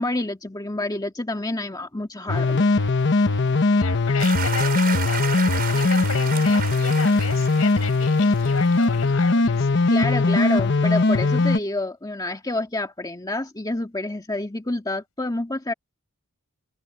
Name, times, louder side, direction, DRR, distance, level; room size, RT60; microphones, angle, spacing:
voice 1, 0.0-2.7 9.9-15.7, left 2 dB, 15° left, 1.8 m, -28 dB
sound 1, 2.3-11.6, left 3 dB, 55° left, 1.0 m, -20 dB
voice 2, 3.7-10.1, left 5 dB, 70° left, 5.3 m, -34 dB
sound 2, 4.2-8.9, right 7 dB, 45° right, 5.3 m, -32 dB
head